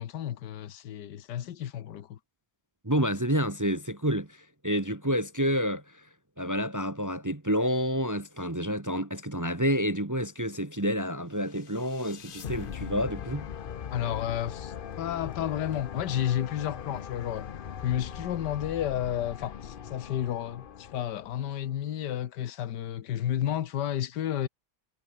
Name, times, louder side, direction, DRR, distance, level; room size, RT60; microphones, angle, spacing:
voice 1, 0.0-2.2 13.9-17.5 17.8-24.5, left 11 dB, 80° left, 1.6 m, -31 dB
voice 2, 2.8-6.0 6.4-13.5, equal, 15° right, 0.9 m, -29 dB
sound 1, 11.5-21.7, left 8 dB, 55° left, 0.6 m, -40 dB
omnidirectional pair, 1.8 m